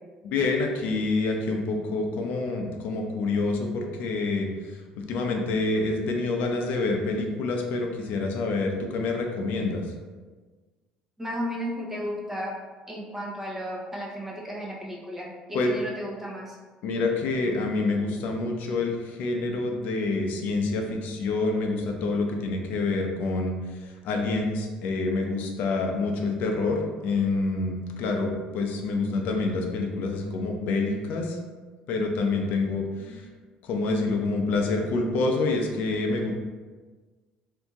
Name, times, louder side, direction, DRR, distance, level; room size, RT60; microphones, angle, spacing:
voice 1, 0.2-4.5 5.0-9.8 15.5-15.7 16.8-23.5 24.0-28.3 28.5-31.4 31.9-33.1 33.6-36.3, left 3 dB, 65° left, 2 dB, 0.6 m, -27 dB
voice 2, 11.2-12.6 12.9-16.6 33.0-33.2, equal, 10° right, -3 dB, 0.8 m, -34 dB
2.8 x 2.6 x 3.5 m, 1.4 s
cardioid pair, 105°, 3 cm